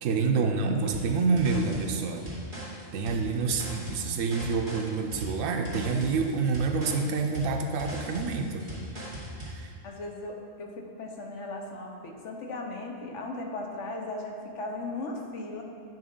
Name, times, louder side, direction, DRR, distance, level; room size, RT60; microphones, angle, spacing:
voice 1, 0.0-2.3 2.9-8.7 9.4-9.7, right 4 dB, 80° right, 3 dB, 1.0 m, -27 dB
sound 1, 0.9-9.6, right 1 dB, 20° right, 2.2 m, -39 dB
voice 2, 9.8-15.6, left 2 dB, 70° left, 1 dB, 1.1 m, -37 dB
9.3 x 5.9 x 3.7 m, 2.2 s
omnidirectional pair, 1.3 m